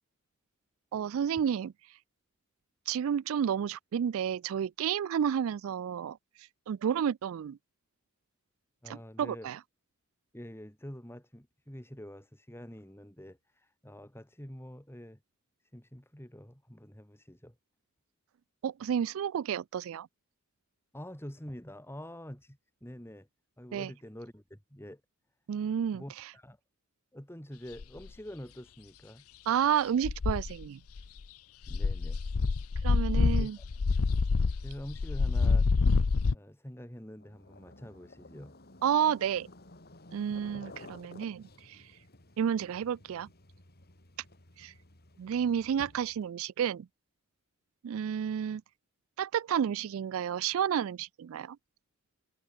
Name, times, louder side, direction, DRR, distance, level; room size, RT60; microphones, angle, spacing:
voice 1, 0.9-1.7 2.9-6.2 6.7-7.6 9.5-9.6 18.6-20.1 23.7-23.9 25.5-26.0 29.5-30.8 32.8-33.6 38.8-39.5 40.1-41.4 41.7-41.8 42.4-43.3 44.6-44.7 45.2-46.9 47.8-48.6 49.2-51.6, right 8 dB, 70° right, 0.3 m, -30 dB
voice 2, 8.8-9.5 10.3-15.2 15.6-17.6 20.9-23.3 23.6-25.0 25.9-26.6 27.1-29.3 31.7-32.2 33.1-33.7 34.6-35.7 36.3-38.6 40.3-40.7, equal, 10° left, 4.1 m, -46 dB
sound 1, 27.8-28.1 30.0-30.7 31.0-31.2 31.7-36.3, left 4 dB, 85° left, 0.6 m, -27 dB
sound 2, 37.2-46.3, left 2 dB, 50° left, 4.1 m, -54 dB
head